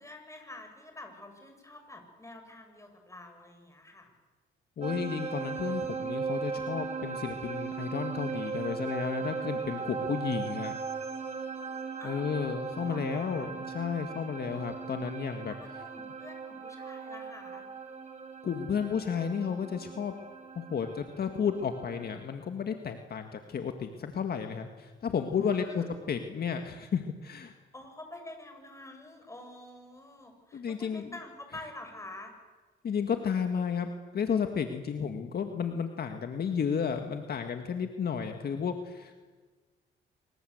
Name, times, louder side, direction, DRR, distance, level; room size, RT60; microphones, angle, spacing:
voice 1, 0.0-4.1 12.0-12.3 12.9-13.5 15.5-17.7 25.5-25.9 27.7-32.3, left 2 dB, 15° left, 4 dB, 7.0 m, -47 dB
voice 2, 4.8-10.7 12.0-15.8 18.4-20.1 20.6-27.5 30.5-31.2 32.8-33.9 34.1-39.2, left 6 dB, 50° left, 6 dB, 1.9 m, -32 dB
sound 1, 4.8-22.3, right 5 dB, 35° right, 4.7 m, -38 dB
25.5 x 23.5 x 8.0 m, 1.4 s
cardioid pair, 90°, 20 cm